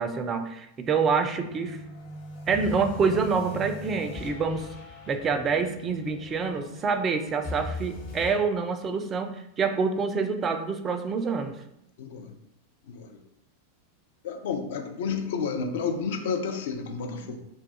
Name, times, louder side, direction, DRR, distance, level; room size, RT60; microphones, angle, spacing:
voice 1, 0.0-1.8 2.5-4.7 5.1-11.6, right 5 dB, 25° right, 7 dB, 0.3 m, -27 dB
sound 1, 1.2-8.3, left 1 dB, 40° left, 1.0 m, -40 dB
voice 2, 12.0-12.3 12.9-13.2 14.2-17.4, left 5 dB, 55° left, 5 dB, 0.4 m, -31 dB
2.3 x 2.3 x 3.9 m, 0.79 s
figure-of-eight pair, 90°, 0 cm